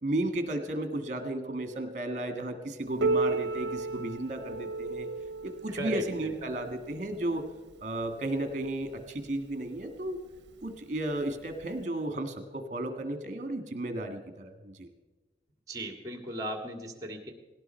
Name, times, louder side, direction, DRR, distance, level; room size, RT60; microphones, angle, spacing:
voice 1, 0.0-5.1 5.4-7.4 7.8-10.2 10.6-14.9, right 1 dB, 45° right, 8 dB, 1.9 m, -34 dB
Piano, 3.0-8.3 9.2-9.3 9.8-9.9 10.7-10.8 11.8-11.9, right 3 dB, 80° right, 0.6 m, -34 dB
voice 2, 5.7-6.3 15.7-17.3, right 1 dB, 20° right, 5 dB, 2.0 m, -37 dB
18.5 x 17.5 x 4.5 m, 1.2 s
head